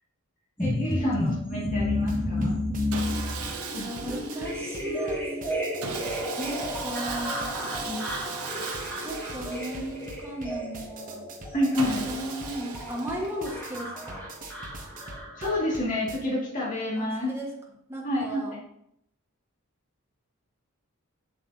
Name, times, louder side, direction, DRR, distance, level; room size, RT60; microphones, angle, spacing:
voice 1, 0.6-2.6 3.7-4.2 7.8-8.1 11.5-12.1 15.4-17.3 18.0-18.6, left 1 dB, 35° left, -5 dB, 2.1 m, -29 dB
sound 1, 0.6-15.8, left 1 dB, 10° left, 1.5 m, -32 dB
sound 2, 2.0-16.2, right 2 dB, 40° right, 0.9 m, -44 dB
Sawing, 2.9-5.0 5.8-10.3 11.8-13.6, right 5 dB, 85° right, 0.9 m, -38 dB
voice 2, 3.7-5.3 6.4-7.5 9.0-11.2 11.7-14.2 17.0-17.5 17.9-18.6, equal, 10° right, -2 dB, 1.4 m, -36 dB
7.4 x 6.4 x 2.8 m, 0.74 s
head